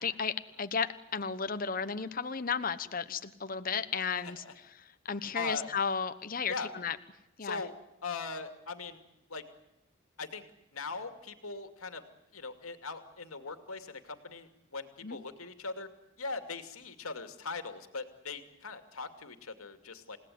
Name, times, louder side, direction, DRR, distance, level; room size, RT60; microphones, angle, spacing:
voice 1, 0.0-4.4 4.8-7.0 7.4-7.6 15.0-15.2, left 6 dB, 40° left, 11 dB, 1.1 m, -34 dB
voice 2, 4.2-4.5 5.3-5.7 6.5-6.7 7.4-7.7 8.0-9.0 9.3-9.5 10.2-10.4 10.7-12.0 12.3-15.9 16.2-20.2, left 4 dB, 85° left, 8 dB, 2.6 m, -40 dB
29.0 x 17.5 x 9.4 m, 0.88 s
head